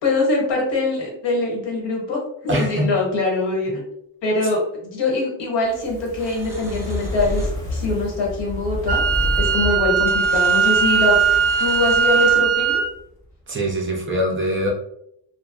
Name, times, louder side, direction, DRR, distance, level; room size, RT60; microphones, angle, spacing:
voice 1, 0.0-3.8 4.2-9.0 9.4-11.2 11.6-12.8, left 2 dB, 80° left, -1 dB, 1.2 m, -23 dB
voice 2, 2.5-2.9 3.7-3.8 13.5-14.7, equal, 30° right, -1 dB, 0.5 m, -23 dB
Fire, 5.6-13.0 13.3-13.4, left 1 dB, 30° left, 0.9 m, -29 dB
sound 1, 6.2-7.7 9.0-9.1 9.9-12.6, equal, 5° right, 1.3 m, -40 dB
Wind instrument woodwind instrument, 8.9-12.9, right 6 dB, 65° right, 0.6 m, -19 dB
2.7 x 2.2 x 2.4 m, 0.72 s
cardioid pair, 150°, 43 cm